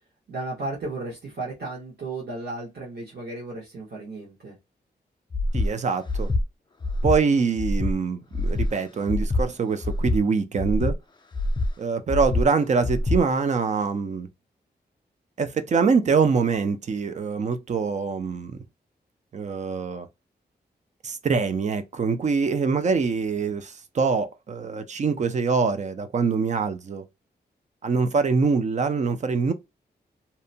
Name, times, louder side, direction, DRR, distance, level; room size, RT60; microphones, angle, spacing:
voice 1, 0.3-4.6, right 2 dB, 65° right, 1.2 m, -34 dB
Breathing, 5.3-5.7 6.1-6.4 6.8-7.2 7.6-7.9 8.3-8.7 9.1-9.4 9.8-10.2 10.6-10.9 11.3-11.7 12.1-12.4 12.8-13.2, left 2 dB, 25° left, 0.4 m, -24 dB
voice 2, 5.5-6.3 7.0-10.9 11.8-14.3 15.4-18.6 19.3-20.1 21.0-27.0 27.8-29.5, right 5 dB, 45° right, 0.4 m, -24 dB
2.7 x 2.1 x 2.6 m
wide cardioid pair, 165°, 17 cm